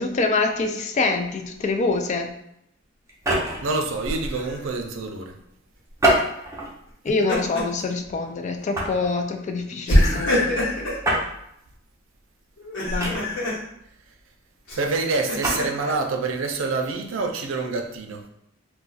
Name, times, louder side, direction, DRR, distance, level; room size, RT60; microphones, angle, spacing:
voice 1, 0.0-2.3 7.0-10.4 12.9-13.2, left 3 dB, 40° left, 5 dB, 0.3 m, -25 dB
sound 1, 3.1-3.7 6.0-6.7 7.4-7.6 8.7-9.1 11.0-11.3 13.0-13.5 15.2-15.6, right 1 dB, 15° right, 0.6 m, -24 dB
voice 2, 3.6-5.4 14.8-18.2, right 3 dB, 85° right, 4 dB, 0.5 m, -26 dB
Laughter, 4.0-4.6 6.9-7.8 8.2-8.4 9.9-11.0 12.6-13.6 14.7-15.9, left 1 dB, 85° left, 1.1 m, -24 dB
2.3 x 2.2 x 3.9 m, 0.77 s
head